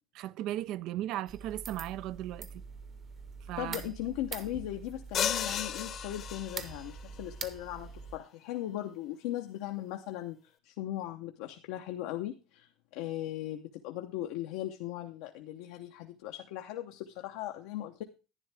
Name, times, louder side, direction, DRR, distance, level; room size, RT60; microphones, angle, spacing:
voice 1, 0.1-2.6 3.5-3.8, right 13 dB, 65° right, 0.4 m, -36 dB
sound 1, 1.3-8.2, right 5 dB, 40° right, 1.1 m, -45 dB
voice 2, 3.6-10.4 10.6-18.0, left 13 dB, 85° left, 0.8 m, -38 dB
sound 2, 5.1-6.9, left 9 dB, 50° left, 0.9 m, -34 dB
11.0 x 9.8 x 3.4 m
supercardioid pair, 105°, 0 cm